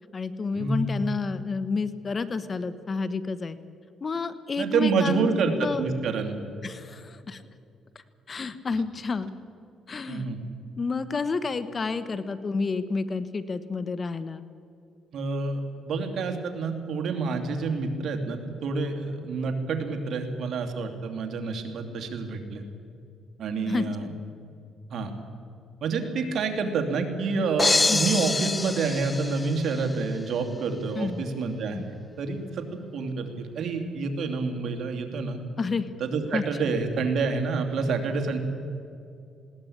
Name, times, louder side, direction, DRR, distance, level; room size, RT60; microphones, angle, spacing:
voice 1, 0.1-3.6 4.0-5.3 5.6-5.9 6.6-7.4 8.3-9.3 9.9-10.3 10.8-14.4 23.7-23.8 27.9-28.0 30.9-31.2 31.7-31.8 35.6-35.9 36.3-36.7, left 4 dB, 35° left, 13 dB, 1.1 m, -30 dB
voice 2, 4.6-6.4 10.1-10.4 15.1-22.6 23.4-24.1 24.9-25.1 25.8-32.6 32.9-35.4 36.0-38.4, right 4 dB, 65° right, 4 dB, 2.8 m, -28 dB
sound 1, 27.6-29.8, left 3 dB, 20° left, 0.8 m, -26 dB
20.0 x 18.0 x 8.7 m, 2.5 s
cardioid pair, 90°, 0 cm